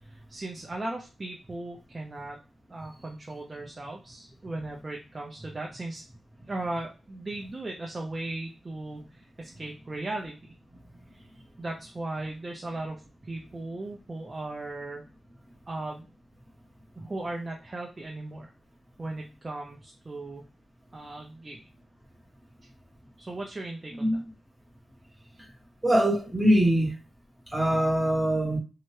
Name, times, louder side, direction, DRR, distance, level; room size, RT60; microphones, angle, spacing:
voice 1, 0.0-2.4 2.7-6.0 6.5-10.6 11.6-15.0 15.7-16.1 17.0-18.5 19.0-20.4 20.9-21.6 23.2-24.2, right 2 dB, 25° right, 0.4 m, -37 dB
voice 2, 25.8-26.9 27.5-28.6, equal, 5° right, 0.8 m, -23 dB
2.7 x 2.1 x 3.1 m
wide cardioid pair, 140°, 0 cm